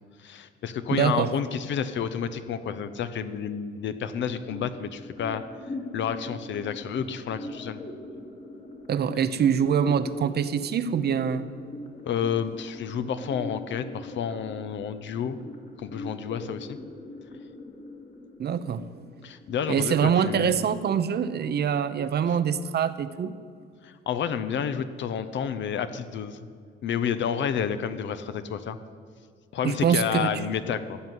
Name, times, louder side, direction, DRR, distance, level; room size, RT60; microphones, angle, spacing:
voice 1, 0.2-5.4 5.9-7.8 9.2-9.3 12.0-15.4 15.8-16.8 19.2-20.7 22.3-22.4 23.8-26.4 26.8-28.8 29.5-31.0, left 7 dB, 70° left, 11 dB, 0.9 m, -30 dB
voice 2, 0.9-1.3 8.9-11.5 18.4-18.9 19.7-23.3 29.6-30.3, right 7 dB, 55° right, 12 dB, 0.8 m, -24 dB
sound 1, 4.3-20.3, left 2 dB, 35° left, 1.6 m, -42 dB
14.5 x 6.0 x 9.6 m, 2.2 s
cardioid pair, 90°, 20 cm